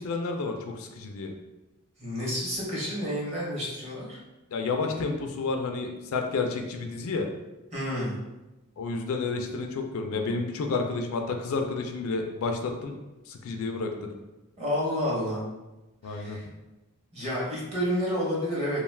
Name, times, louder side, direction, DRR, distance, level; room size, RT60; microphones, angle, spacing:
voice 1, 0.0-1.3 4.5-7.3 8.8-13.0 13.3-14.1 16.0-16.4, left 3 dB, 65° left, 4 dB, 0.3 m, -30 dB
voice 2, 2.0-4.2 7.7-8.2 14.6-15.4 16.0-16.5 17.1-18.8, equal, 30° right, -6 dB, 0.8 m, -30 dB
2.3 x 2.3 x 3.2 m, 1.0 s
head